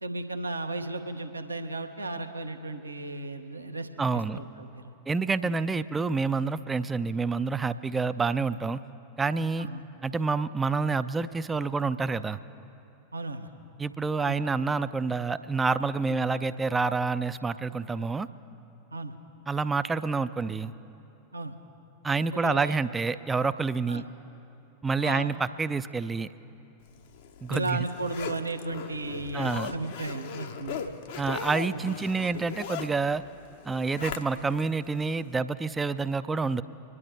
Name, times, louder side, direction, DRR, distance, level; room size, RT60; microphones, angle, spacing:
voice 1, 0.0-4.9 5.4-5.5 9.6-9.8 13.1-13.5 14.2-14.4 16.1-16.2 18.9-19.1 21.3-21.6 22.3-22.8 23.9-24.0 25.0-25.3 27.5-30.9 31.7-31.9 34.0-34.1, right 2 dB, 80° right, 6 dB, 0.8 m, -35 dB
voice 2, 4.0-4.4 5.1-8.8 9.2-9.7 10.0-12.4 13.8-18.3 19.5-20.7 22.0-24.0 24.8-26.3 27.4-27.8 29.3-29.7 31.2-33.2 33.6-36.6, right 4 dB, 15° right, 13 dB, 0.4 m, -28 dB
Zipper (clothing), 27.0-34.6 35.0-35.1, left 7 dB, 55° left, 0.7 m, -39 dB
26.0 x 11.0 x 3.3 m, 2.8 s
figure-of-eight pair, 90°, 0 cm